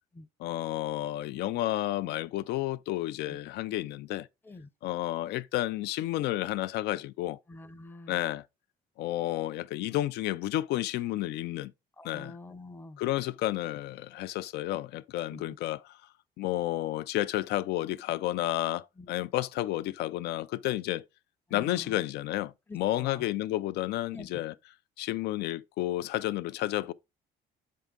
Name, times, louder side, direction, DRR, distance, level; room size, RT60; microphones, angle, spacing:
voice 1, 0.4-4.3 4.8-7.4 8.1-8.4 9.0-11.7 12.0-12.4 13.0-16.0 16.4-21.0 21.5-24.5 25.0-26.9, left 15 dB, 80° left, 0.4 m, -31 dB
voice 2, 7.5-8.2 12.0-13.0 15.3-15.6 19.0-19.1 21.5-22.0 22.7-23.3 24.1-24.4, left 2 dB, 10° left, 0.6 m, -46 dB
7.3 x 4.7 x 3.7 m
cardioid pair, 110°, 17 cm